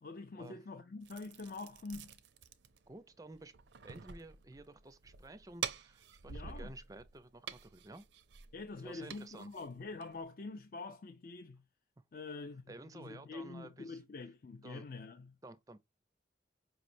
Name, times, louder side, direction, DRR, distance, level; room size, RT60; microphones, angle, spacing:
voice 1, 0.0-2.1 6.3-6.7 8.5-11.6 12.1-15.4, left 3 dB, 50° left, 0.4 m, -46 dB
sound 1, 1.0-10.3, right 7 dB, 75° right, 0.5 m, -48 dB
voice 2, 2.9-3.6 3.8-8.1 8.8-9.5 12.7-14.0 14.6-14.9 15.4-15.8, right 2 dB, 20° right, 0.4 m, -52 dB
5.0 x 3.1 x 2.5 m
head